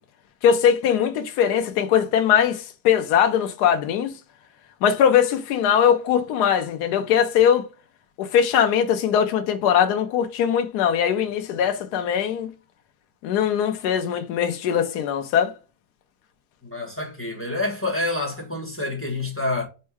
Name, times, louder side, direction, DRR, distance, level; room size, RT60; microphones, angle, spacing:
voice 1, 0.4-4.1 4.8-7.6 8.2-12.5 13.2-15.5, left 8 dB, 70° left, 1.2 m, -21 dB
voice 2, 16.6-19.7, left 2 dB, 10° left, 1.1 m, -27 dB
4.5 x 2.2 x 4.5 m
omnidirectional pair, 1.9 m